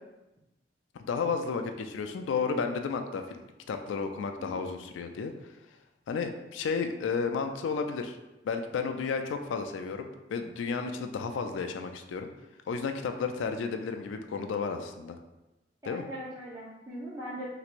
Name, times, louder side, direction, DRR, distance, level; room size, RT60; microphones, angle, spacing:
voice 1, 0.9-3.2 3.7-5.3 6.1-8.2 8.4-12.3 12.7-15.2 15.9-16.0, left 5 dB, 90° left, 7 dB, 0.3 m, -32 dB
voice 2, 4.4-4.7 15.8-17.4, equal, 15° right, -8 dB, 0.5 m, -40 dB
3.3 x 3.0 x 2.5 m, 1.0 s
head